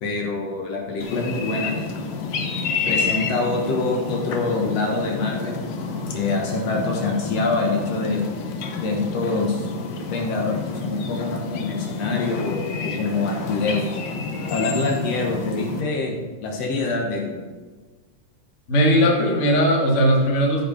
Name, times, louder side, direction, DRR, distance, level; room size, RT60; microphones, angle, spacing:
voice 1, 0.0-1.9 2.9-5.6 6.1-8.2 8.8-9.7 10.1-13.9 14.5-17.4, left 3 dB, 60° left, 0 dB, 2.3 m, -25 dB
sound 1, 1.0-15.8, left 4 dB, 80° left, 1.0 m, -29 dB
voice 2, 18.7-20.6, equal, 35° left, -1 dB, 1.2 m, -18 dB
14.0 x 5.2 x 5.1 m, 1.3 s
omnidirectional pair, 3.5 m